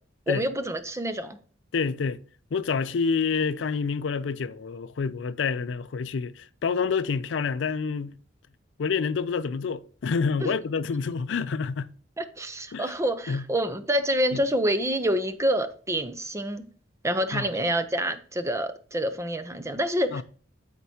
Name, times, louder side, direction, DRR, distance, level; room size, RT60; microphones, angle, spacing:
voice 1, 0.3-1.4 10.4-10.5 12.2-16.6 17.0-20.2, equal, 15° right, 0.6 m, -27 dB
voice 2, 1.7-2.2 2.5-8.2 8.8-11.9 12.7-12.9 13.3-13.4 14.3-14.4 17.3-17.5 20.1-20.2, left 5 dB, 70° left, 0.4 m, -28 dB
12.5 x 4.5 x 2.8 m
head